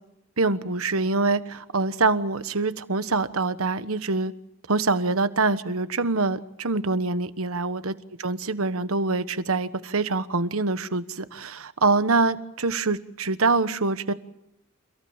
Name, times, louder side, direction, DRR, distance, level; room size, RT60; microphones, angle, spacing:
voice 1, 0.4-4.3 4.7-7.9 8.2-14.1, right 3 dB, 75° right, 12 dB, 1.3 m, -25 dB
28.5 x 17.0 x 8.8 m, 0.81 s
head